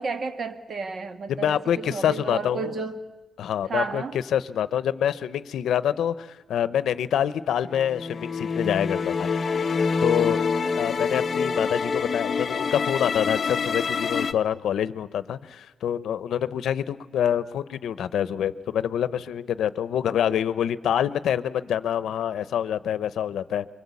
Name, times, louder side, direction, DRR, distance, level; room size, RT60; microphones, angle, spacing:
voice 1, 0.0-3.0 3.7-4.2, right 4 dB, 40° right, 9 dB, 1.5 m, -32 dB
voice 2, 1.3-2.7 3.4-9.3 10.0-10.4 10.7-23.7, left 9 dB, 90° left, 15 dB, 0.7 m, -26 dB
sound 1, 7.8-14.3, left 5 dB, 35° left, 0.8 m, -26 dB
24.0 x 23.5 x 8.4 m, 1.1 s
wide cardioid pair, 160°, 0 cm